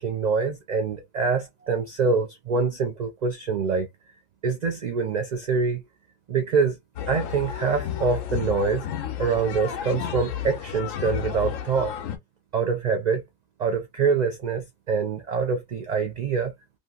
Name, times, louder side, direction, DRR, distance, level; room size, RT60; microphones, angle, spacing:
voice 1, 0.0-3.9 4.4-5.8 6.3-6.8 7.1-8.9 9.2-11.9 12.5-13.2 13.6-16.5, right 5 dB, 70° right, 0.4 m, -25 dB
sound 1, 7.0-12.2, left 10 dB, 85° left, 1.0 m, -32 dB
2.8 x 2.6 x 2.3 m
omnidirectional pair, 1.3 m